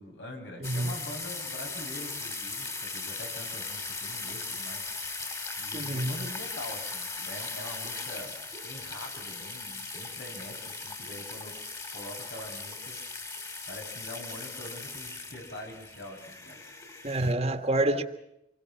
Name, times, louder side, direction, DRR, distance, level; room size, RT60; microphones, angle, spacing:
voice 1, 0.0-4.8 5.6-8.4 8.6-11.6 11.9-16.6, left 1 dB, 75° left, 7.7 m, -44 dB
sound 1, 0.6-17.3, left 3 dB, 20° left, 3.4 m, -38 dB
voice 2, 0.6-0.9 5.7-6.1 17.0-18.0, right 1 dB, 35° right, 1.8 m, -27 dB
27.0 x 22.0 x 5.9 m
head